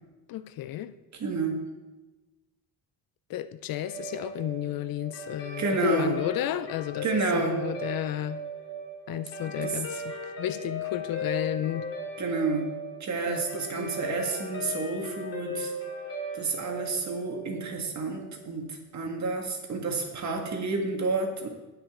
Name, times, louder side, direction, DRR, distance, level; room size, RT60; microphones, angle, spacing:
voice 1, 0.3-0.9 3.3-7.1 7.3-8.4 9.1-11.9 13.3-14.0, left 12 dB, 70° left, 0.6 m, -32 dB
voice 2, 1.2-1.7 5.6-6.2 7.0-7.6 9.6-9.8 12.2-12.7 13.0-15.7 16.3-21.5, right 3 dB, 50° right, 2.0 m, -30 dB
Guitar, 3.8-18.4, left 1 dB, 40° left, 3.1 m, -37 dB
16.5 x 5.7 x 3.8 m
cardioid pair, 100°, 36 cm